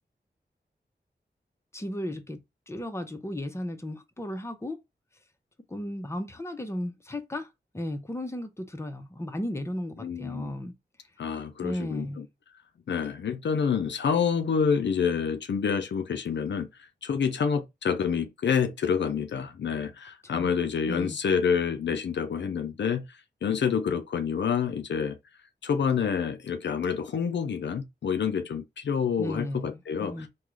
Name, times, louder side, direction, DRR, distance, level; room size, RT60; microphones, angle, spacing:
voice 1, 1.7-2.4 2.7-4.8 5.7-7.5 7.7-10.7 11.6-12.3 20.3-20.5 20.9-21.2 29.2-30.3, left 1 dB, 15° left, 0.7 m, -35 dB
voice 2, 10.0-10.5 11.2-12.3 12.9-25.2 25.6-30.3, left 6 dB, 80° left, 0.5 m, -28 dB
3.7 x 2.3 x 3.0 m
cardioid pair, 55°, 18 cm